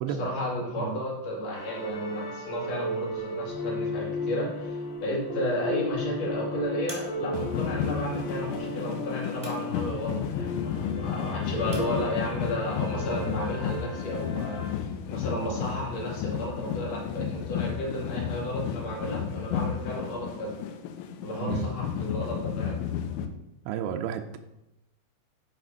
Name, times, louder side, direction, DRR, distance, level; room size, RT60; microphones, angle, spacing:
voice 1, 0.2-20.6 21.2-22.8, left 1 dB, 45° left, -3 dB, 2.5 m, -33 dB
sound 1, 1.5-14.7, left 1 dB, 75° left, 2.5 m, -35 dB
sound 2, 4.7-13.9, right 1 dB, 15° right, 0.6 m, -52 dB
sound 3, 7.3-23.3, left 8 dB, 90° left, 3.0 m, -33 dB
voice 2, 21.4-21.7 23.7-24.4, right 9 dB, 90° right, 5 dB, 2.3 m, -32 dB
8.5 x 4.2 x 5.3 m, 0.91 s
omnidirectional pair, 5.3 m